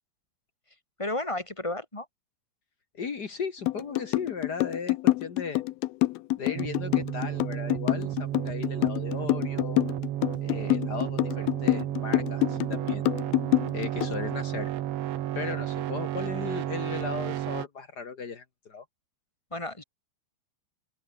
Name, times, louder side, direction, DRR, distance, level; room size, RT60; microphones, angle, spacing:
voice 1, 1.0-2.1 19.5-19.8, left 2 dB, 5° left, 3.8 m, -32 dB
voice 2, 2.9-5.6 6.4-9.8 10.4-13.1 13.7-14.7 15.3-18.8, left 5 dB, 60° left, 1.0 m, -37 dB
sound 1, 3.7-14.2, left 19 dB, 80° left, 2.2 m, -26 dB
sound 2, 6.6-17.7, right 12 dB, 85° right, 4.0 m, -32 dB
open air
omnidirectional pair, 5.1 m